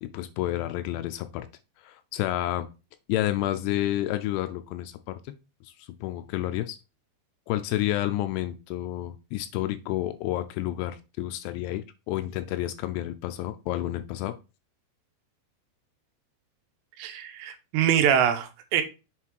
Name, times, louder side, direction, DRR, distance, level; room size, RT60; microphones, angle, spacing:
voice 1, 0.0-1.5 1.8-2.7 3.1-5.2 5.6-6.8 7.5-14.4, left 14 dB, 85° left, 9 dB, 2.6 m, -30 dB
voice 2, 17.0-18.8, right 9 dB, 85° right, 7 dB, 3.1 m, -24 dB
7.6 x 3.7 x 4.6 m, 0.29 s
omnidirectional pair, 4.9 m